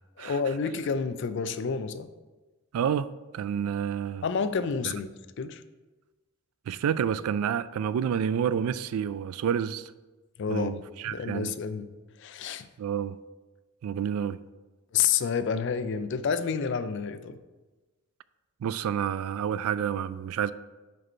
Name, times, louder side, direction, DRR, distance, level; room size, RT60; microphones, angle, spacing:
voice 1, 0.2-2.1 4.2-5.6 10.4-10.8 11.1-11.9 12.2-12.7 14.9-17.4, left 6 dB, 55° left, 0.4 m, -29 dB
voice 2, 2.7-4.2 4.8-4.9 6.7-9.9 10.5-11.5 12.8-13.2 13.8-14.4 18.6-20.5, right 8 dB, 90° right, 0.3 m, -29 dB
4.9 x 4.6 x 5.4 m
head